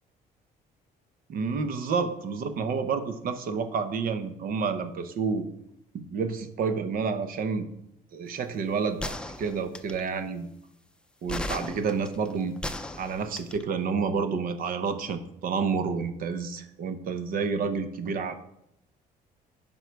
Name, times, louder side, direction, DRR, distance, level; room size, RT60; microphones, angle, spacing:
voice 1, 1.3-5.5 5.9-7.7 8.1-10.5 11.2-12.5 13.0-18.3, right 5 dB, 60° right, 9 dB, 0.9 m, -29 dB
sound 1, 9.0-10.1 11.3-13.6, left 1 dB, 5° left, 0.6 m, -35 dB
9.7 x 5.5 x 4.6 m, 0.79 s
cardioid pair, 110°, 17 cm